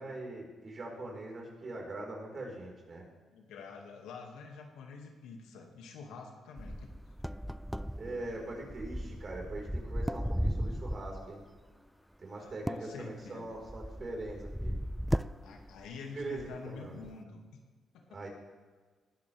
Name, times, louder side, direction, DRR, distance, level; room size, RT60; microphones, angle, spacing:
voice 1, 0.0-3.1 8.0-11.4 12.2-14.8 16.1-17.0 18.1-18.3, right 2 dB, 40° right, -1 dB, 4.9 m, -42 dB
voice 2, 3.3-6.9 12.4-13.4 15.4-17.4 17.9-18.2, left 4 dB, 90° left, 2 dB, 2.3 m, -47 dB
sound 1, 6.6-11.4 12.5-16.0 16.2-16.6 17.1-17.2, equal, ahead, 0.3 m, -36 dB
19.5 x 13.5 x 3.6 m, 1.4 s
cardioid pair, 90°, 0 cm